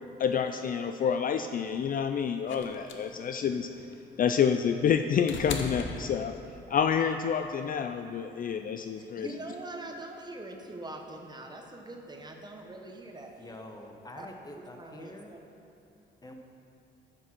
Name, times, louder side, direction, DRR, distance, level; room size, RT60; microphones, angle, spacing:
voice 1, 0.2-3.9 4.2-6.4 6.7-9.3, left 7 dB, 45° left, 7 dB, 0.4 m, -28 dB
sound 1, 2.5-6.8 8.0-8.1, left 5 dB, 70° left, 0.8 m, -40 dB
voice 2, 9.0-13.3 14.2-14.3 14.5-15.4, right 2 dB, 20° right, 2 dB, 1.1 m, -43 dB
voice 3, 13.4-15.3 16.2-16.3, left 1 dB, 20° left, 3 dB, 1.0 m, -46 dB
9.3 x 6.0 x 6.0 m, 2.8 s
cardioid pair, 90°, 20 cm